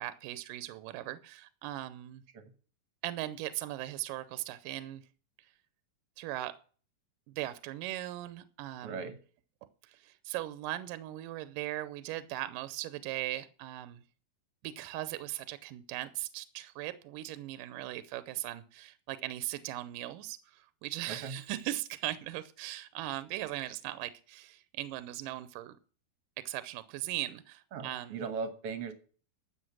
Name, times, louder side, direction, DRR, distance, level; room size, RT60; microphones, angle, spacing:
voice 1, 0.0-2.2 3.0-5.0 5.4-5.5 6.2-6.5 7.3-9.2 9.8-14.0 14.6-25.8 26.5-28.2, right 15 dB, 80° right, 2.3 m, -39 dB
voice 2, 8.8-9.2 21.1-21.4 27.7-28.9, right 5 dB, 55° right, 1.8 m, -38 dB
13.0 x 7.6 x 6.1 m
omnidirectional pair, 3.9 m